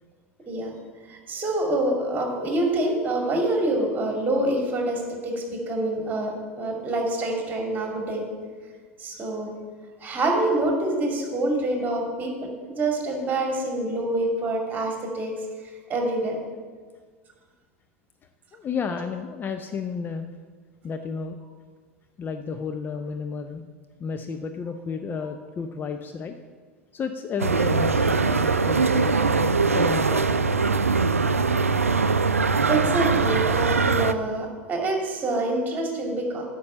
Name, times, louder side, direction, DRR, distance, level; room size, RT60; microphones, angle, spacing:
voice 1, 1.1-8.3 9.0-9.5 10.0-15.3 15.9-16.4 32.7-36.5, right 2 dB, 25° right, 1 dB, 2.6 m, -26 dB
voice 2, 18.5-20.3 20.8-21.4 22.2-23.6 24.0-26.4 26.9-30.4, left 5 dB, 25° left, 7 dB, 0.5 m, -32 dB
sound 1, 27.4-34.1, right 4 dB, 90° right, 0.4 m, -22 dB
8.5 x 5.4 x 7.8 m, 1.5 s
figure-of-eight pair, 85°, 7 cm